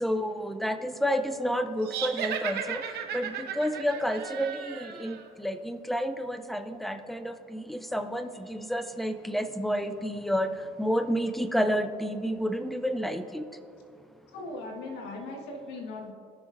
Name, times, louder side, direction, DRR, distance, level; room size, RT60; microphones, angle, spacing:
voice 1, 0.0-2.8 3.1-10.5 10.8-13.4, equal, ahead, 9 dB, 0.4 m, -30 dB
sound 1, 1.8-5.2, right 8 dB, 75° right, 0.8 m, -35 dB
voice 2, 14.3-16.1, left 2 dB, 90° left, 1 dB, 1.5 m, -38 dB
16.0 x 6.1 x 2.6 m, 2.4 s
cardioid pair, 110°, 17 cm